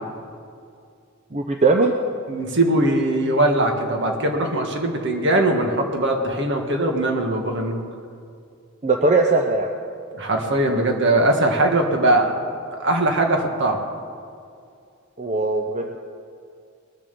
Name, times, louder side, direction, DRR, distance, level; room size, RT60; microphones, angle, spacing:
voice 1, 1.3-1.9 8.8-9.7 15.2-16.0, right 3 dB, 35° right, 3 dB, 0.7 m, -19 dB
voice 2, 2.3-7.8 10.1-12.3 12.7-13.8, right 1 dB, 55° right, 3 dB, 1.7 m, -20 dB
20.5 x 7.3 x 6.9 m, 2.4 s
head